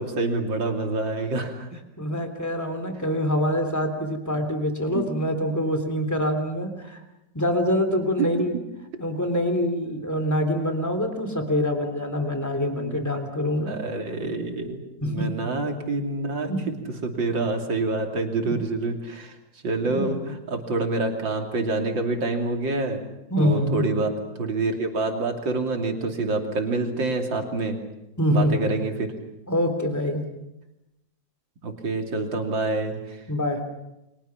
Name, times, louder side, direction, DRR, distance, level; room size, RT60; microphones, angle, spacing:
voice 1, 0.0-1.8 4.9-5.1 8.2-8.3 12.8-13.0 13.7-19.4 19.6-23.0 23.4-27.8 28.3-29.1 31.6-33.2, right 3 dB, 85° right, 3 dB, 3.6 m, -27 dB
voice 2, 2.0-7.0 7.3-8.6 9.0-13.7 15.0-15.3 16.5-16.6 18.4-18.5 19.8-20.1 23.3-23.9 28.2-28.7 29.5-30.2 33.3-33.6, left 1 dB, 10° left, 5 dB, 3.1 m, -25 dB
30.0 x 24.0 x 5.9 m, 0.91 s
omnidirectional pair, 2.0 m